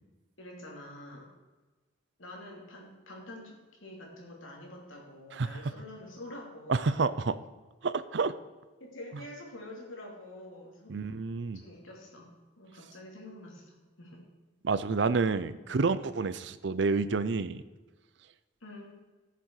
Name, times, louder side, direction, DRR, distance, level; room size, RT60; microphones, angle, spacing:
voice 1, 0.4-1.3 2.2-7.0 8.8-11.1 11.5-12.3 12.6-14.2 15.7-15.8 18.6-19.0, left 1 dB, 75° left, -1 dB, 3.0 m, -47 dB
voice 2, 6.7-7.4 7.8-8.3 10.9-11.6 14.6-17.6, right 4 dB, 60° right, 14 dB, 0.5 m, -29 dB
15.0 x 6.8 x 4.8 m, 1.2 s
head